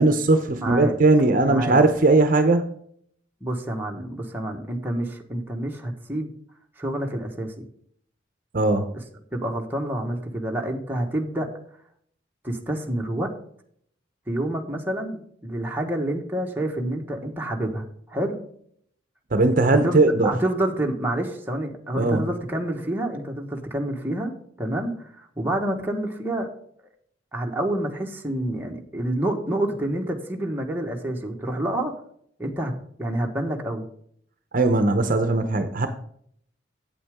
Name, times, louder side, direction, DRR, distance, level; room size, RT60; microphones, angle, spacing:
voice 1, 0.0-2.7 8.5-8.9 19.3-20.3 22.0-22.2 34.5-35.9, right 2 dB, 50° right, 8 dB, 0.8 m, -19 dB
voice 2, 0.6-0.9 1.4-1.8 3.4-6.3 6.8-7.6 9.3-11.5 12.4-13.3 14.3-18.4 19.7-26.5 27.3-31.9 32.4-33.8, right 1 dB, 10° right, 0 dB, 1.3 m, -28 dB
8.6 x 8.4 x 3.6 m, 0.64 s
head